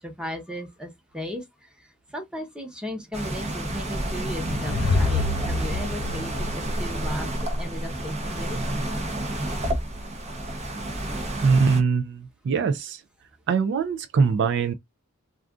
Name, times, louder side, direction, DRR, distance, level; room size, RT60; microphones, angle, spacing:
voice 1, 0.0-8.6, equal, 5° right, 0.9 m, -36 dB
sound 1, 3.1-11.8, right 1 dB, 30° right, 0.7 m, -29 dB
sound 2, 4.1-7.4, left 3 dB, 65° left, 0.6 m, -28 dB
voice 2, 11.4-13.0 13.5-14.7, right 5 dB, 55° right, 0.3 m, -22 dB
2.4 x 2.4 x 3.5 m
head